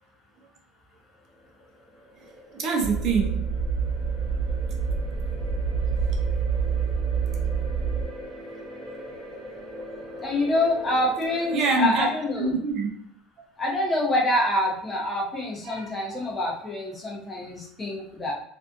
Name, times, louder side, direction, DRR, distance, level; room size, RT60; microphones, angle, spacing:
sound 1, 1.1-11.9, equal, 20° right, 0.8 m, -41 dB
voice 1, 2.5-3.5 11.5-12.1 12.4-12.9 15.6-16.2, right 4 dB, 45° right, 2 dB, 0.5 m, -25 dB
sound 2, 2.8-8.0, right 5 dB, 70° left, 0.5 m, -27 dB
voice 2, 10.2-12.5 13.6-18.3, left 1 dB, 15° left, -2 dB, 0.7 m, -26 dB
2.6 x 2.3 x 2.4 m, 0.68 s
cardioid pair, 150°, 0 cm